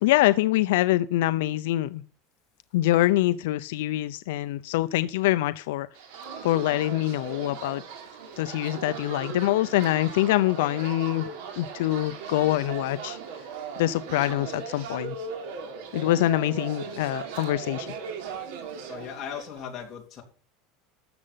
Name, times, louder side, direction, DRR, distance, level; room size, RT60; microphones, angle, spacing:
voice 1, 0.0-2.0 2.7-5.9 6.4-7.8 8.4-11.3 11.6-13.2 13.8-15.2 15.9-17.9, left 15 dB, 80° left, 13 dB, 0.5 m, -24 dB
sound 1, 5.9-19.6, right 6 dB, 75° right, 3.3 m, -38 dB
voice 2, 18.9-20.2, left 8 dB, 25° left, 0 dB, 3.0 m, -37 dB
13.0 x 7.8 x 5.7 m, 0.40 s
supercardioid pair, 170°, 0 cm